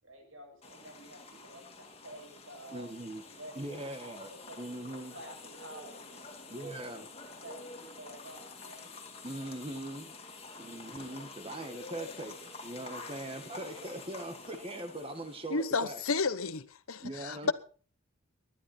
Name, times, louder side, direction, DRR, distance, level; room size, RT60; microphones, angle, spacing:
voice 1, 0.0-2.9 3.2-3.8 4.3-7.0 7.4-8.9, right 1 dB, 65° right, 7.1 m, -51 dB
sound 1, 0.6-15.8, left 3 dB, 25° left, 2.3 m, -48 dB
voice 2, 2.7-3.2 3.5-4.3 4.6-5.1 6.5-7.1 9.2-10.1 10.5-16.0 17.0-17.5, right 1 dB, 25° right, 1.6 m, -41 dB
voice 3, 15.5-17.5, left 4 dB, 80° left, 1.0 m, -31 dB
20.0 x 12.0 x 4.4 m
head